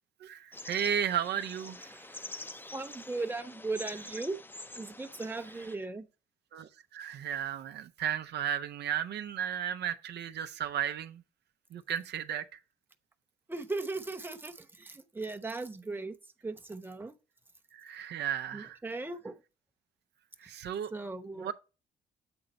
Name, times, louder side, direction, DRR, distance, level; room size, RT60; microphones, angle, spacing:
voice 1, 0.2-2.1 6.5-11.2 11.7-12.6 17.7-18.8 20.4-20.9 21.3-21.5, right 9 dB, 65° right, 0.5 m, -34 dB
sound 1, 0.5-5.8, left 2 dB, 10° left, 0.5 m, -46 dB
voice 2, 2.7-4.4 4.7-6.1 13.5-16.1 16.4-17.1 18.5-19.4 20.9-21.5, right 3 dB, 10° right, 0.9 m, -37 dB
7.9 x 3.9 x 4.1 m
supercardioid pair, 70°, 19 cm